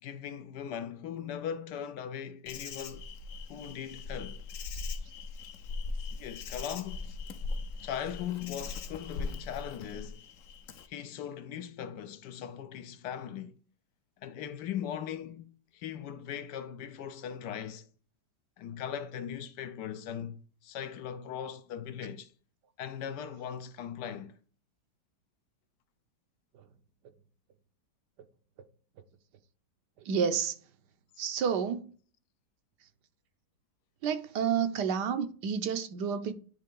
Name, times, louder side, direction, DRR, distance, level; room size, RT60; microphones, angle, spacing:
voice 1, 0.0-3.0 3.5-4.4 6.2-7.2 7.8-10.3 10.9-13.6 14.2-17.9 18.6-22.3 22.8-24.4, left 9 dB, 75° left, 1.2 m, -39 dB
Insect, 2.5-10.9, left 4 dB, 60° left, 0.9 m, -40 dB
voice 2, 30.1-30.5 31.2-31.9 34.0-36.3, right 7 dB, 80° right, 1.3 m, -30 dB
9.6 x 3.2 x 3.7 m
omnidirectional pair, 1.9 m